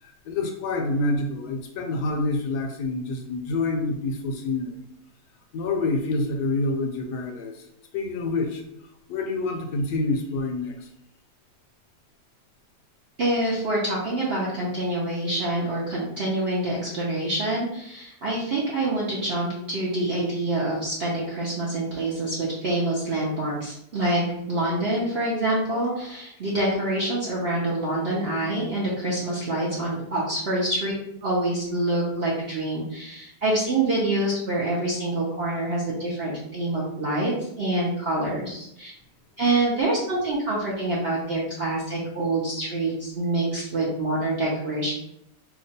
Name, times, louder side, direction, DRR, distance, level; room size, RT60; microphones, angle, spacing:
voice 1, 0.0-4.8 5.5-7.7 7.9-8.6 9.1-10.9, left 2 dB, 75° left, 3 dB, 1.1 m, -27 dB
voice 2, 13.2-24.2 24.5-30.9 31.2-38.9 39.4-44.9, right 1 dB, 55° right, -6 dB, 0.7 m, -26 dB
2.9 x 2.3 x 4.0 m, 0.76 s
omnidirectional pair, 1.8 m